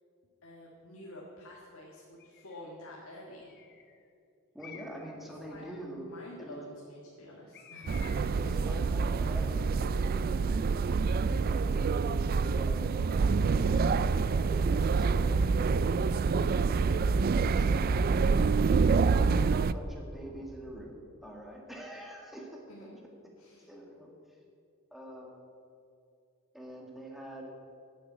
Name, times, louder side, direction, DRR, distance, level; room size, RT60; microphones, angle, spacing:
voice 1, 0.4-3.5 5.4-5.7 6.1-8.0 22.7-23.0 23.4-23.7, left 1 dB, 80° left, -3 dB, 1.9 m, -48 dB
Bird, 2.2-2.6 3.4-4.0 4.6-5.2 7.5-8.5, left 7 dB, 50° left, 1.3 m, -51 dB
voice 2, 4.5-6.1 6.4-6.6 8.3-11.9 12.5-12.9 13.8-14.2 14.6-15.6 17.5-18.3 19.1-22.6 23.7-24.4 24.9-25.3 26.5-27.5, right 1 dB, ahead, -1 dB, 1.9 m, -45 dB
sound 1, 7.9-19.7, right 4 dB, 45° right, 0.3 m, -27 dB
10.0 x 8.5 x 8.7 m, 2.5 s
head